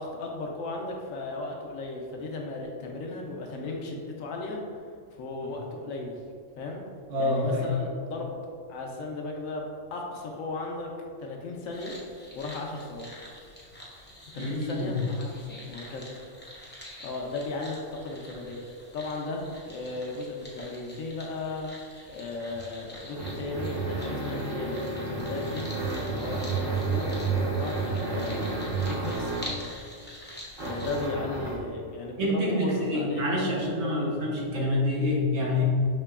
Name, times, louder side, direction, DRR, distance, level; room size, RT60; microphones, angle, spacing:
voice 1, 0.0-4.6 5.1-6.1 6.6-6.8 7.2-8.4 8.7-9.6 9.9-10.9 11.2-12.0 12.3-13.1 14.3-16.1 17.0-18.6 18.9-21.7 22.1-25.7 26.1-28.5 28.9-29.3 30.6-33.2 33.5-34.2, left 3 dB, 80° left, 0 dB, 1.0 m, -35 dB
voice 2, 7.1-7.7 14.4-14.9 32.2-35.6, left 1 dB, 65° right, -4 dB, 1.2 m, -27 dB
sound 1, 11.7-31.1, left 1 dB, 15° left, 0.3 m, -46 dB
sound 2, 22.5-29.7 30.6-31.7, right 3 dB, 45° right, 0.8 m, -31 dB
5.5 x 2.9 x 2.3 m, 2.1 s
omnidirectional pair, 1.4 m